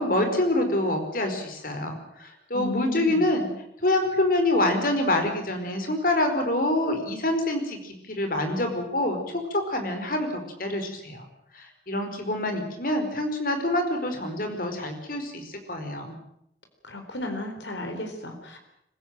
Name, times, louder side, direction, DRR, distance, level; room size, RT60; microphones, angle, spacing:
voice 1, 0.0-3.5 3.8-11.2 11.5-16.2, left 1 dB, 50° left, 5 dB, 4.9 m, -26 dB
voice 2, 2.5-3.3 16.8-18.6, left 1 dB, 85° left, 5 dB, 4.1 m, -34 dB
25.5 x 15.5 x 9.1 m, 0.77 s
head